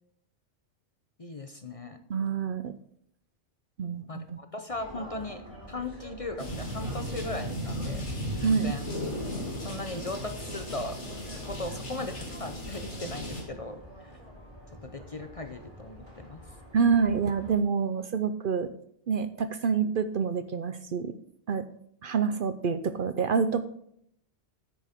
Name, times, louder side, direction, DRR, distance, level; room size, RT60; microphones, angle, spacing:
voice 1, 1.2-2.0 4.1-8.0 8.4-8.9 9.6-11.0 11.4-13.8 14.8-16.4, left 2 dB, 35° left, 7 dB, 0.7 m, -38 dB
voice 2, 2.1-2.7 3.8-4.4 8.4-8.7 16.7-18.7 19.1-21.1 21.5-21.7 22.0-23.6, right 6 dB, 55° right, 11 dB, 0.7 m, -27 dB
sound 1, 4.7-17.6, equal, 30° right, 3.6 m, -48 dB
sound 2, 6.4-13.4, equal, 75° left, 3.1 m, -36 dB
10.0 x 8.7 x 3.6 m, 0.69 s
omnidirectional pair, 1.2 m